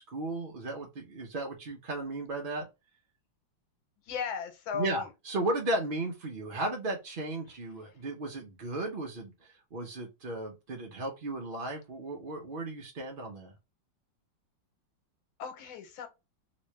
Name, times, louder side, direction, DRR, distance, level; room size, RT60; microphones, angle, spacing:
voice 1, 0.0-2.6 4.7-13.5, right 2 dB, 65° right, 0.5 m, -35 dB
voice 2, 4.0-5.1 7.9-8.0 15.4-16.1, left 7 dB, 90° left, 1.7 m, -36 dB
3.1 x 3.0 x 3.1 m
omnidirectional pair, 2.1 m